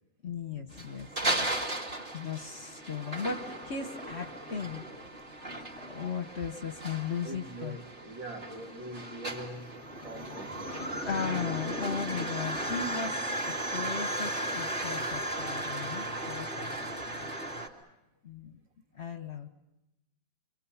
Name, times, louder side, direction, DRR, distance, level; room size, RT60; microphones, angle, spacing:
voice 1, 0.2-1.6 2.1-4.8 5.5-7.8 11.1-16.8 18.2-18.6 18.9-19.5, left 6 dB, 45° left, 1.1 m, -37 dB
sound 1, 0.7-17.7, right 1 dB, 30° right, 2.5 m, -36 dB
voice 2, 7.2-10.8, right 2 dB, 85° right, 2.9 m, -43 dB
27.0 x 24.5 x 7.1 m
omnidirectional pair, 2.0 m